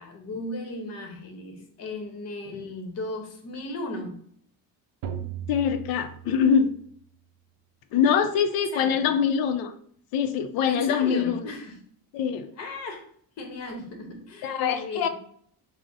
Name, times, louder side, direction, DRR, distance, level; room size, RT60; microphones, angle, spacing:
voice 1, 0.0-4.2 8.7-9.1 10.7-11.8 12.6-13.1 13.4-15.1, left 2 dB, 45° left, 4 dB, 0.8 m, -36 dB
sound 1, 5.0-7.0, right 8 dB, 65° right, 0.5 m, -37 dB
voice 2, 5.5-6.7 7.9-9.7 10.1-11.5 12.1-12.5 14.4-15.1, left 7 dB, 70° left, 9 dB, 0.5 m, -24 dB
4.6 x 2.1 x 3.9 m, 0.62 s
cardioid pair, 175°, 36 cm